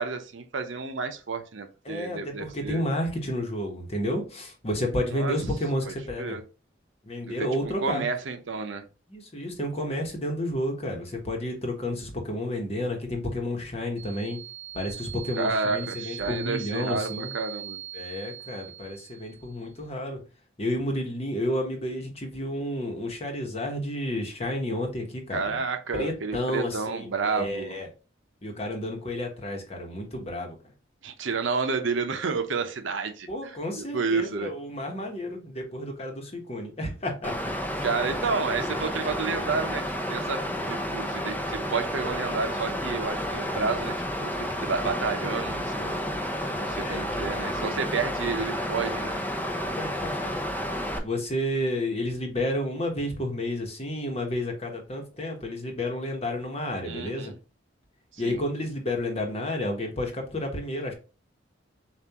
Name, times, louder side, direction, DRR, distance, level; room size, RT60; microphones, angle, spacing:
voice 1, 0.0-2.8 5.1-5.4 5.9-6.0 6.2-6.4 7.3-7.4 7.6-8.8 15.4-17.8 25.3-27.8 31.0-34.5 37.8-39.8 40.1-46.0 46.6-49.2 56.8-57.3 58.1-58.4, right 4 dB, 75° right, 7 dB, 0.7 m, -30 dB
voice 2, 1.8-6.4 7.0-8.0 9.1-14.4 14.7-17.3 17.9-20.2 20.6-25.6 26.0-27.9 28.4-30.5 33.3-37.3 37.7-37.8 46.8-47.3 49.8-50.5 51.0-57.3 58.2-60.9, left 1 dB, 30° left, 3 dB, 1.1 m, -31 dB
sound 1, 14.0-19.6, right 12 dB, 40° right, 0.6 m, -41 dB
Water, 37.2-51.0, equal, 10° left, 0.6 m, -31 dB
7.1 x 2.5 x 2.9 m, 0.34 s
head